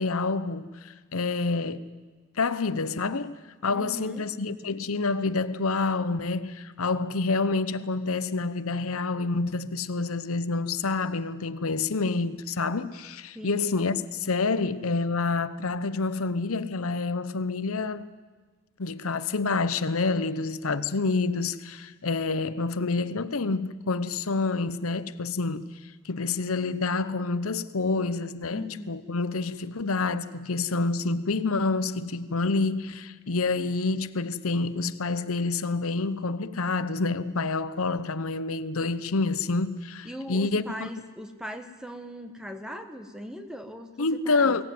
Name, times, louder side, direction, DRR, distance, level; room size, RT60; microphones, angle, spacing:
voice 1, 0.0-1.9 2.4-18.1 18.8-40.9 44.0-44.6, left 3 dB, 80° left, 0.9 m, -28 dB
voice 2, 3.7-4.2 13.3-13.7 28.5-28.9 40.0-44.6, equal, 5° right, 1.3 m, -39 dB
23.0 x 17.5 x 9.4 m
head